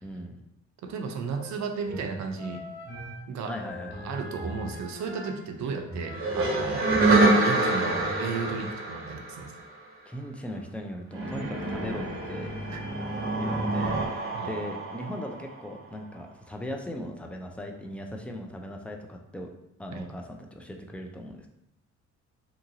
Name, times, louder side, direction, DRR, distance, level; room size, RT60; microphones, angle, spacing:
voice 1, 0.0-0.4 3.5-4.2 5.6-5.8 10.1-12.5 13.4-19.5 19.8-21.5, equal, 5° left, 3 dB, 0.3 m, -38 dB
voice 2, 0.8-2.6 3.3-3.6 4.0-9.5 12.7-12.8 14.3-14.5 19.9-20.1, right 5 dB, 65° right, 5 dB, 0.5 m, -34 dB
sound 1, 1.3-6.5 6.8-8.6, equal, 35° left, 1.2 m, -41 dB
sound 2, 6.1-9.8 11.1-15.8, right 2 dB, 45° right, 0.9 m, -26 dB
2.8 x 2.5 x 2.7 m, 0.84 s
cardioid pair, 90°, 30 cm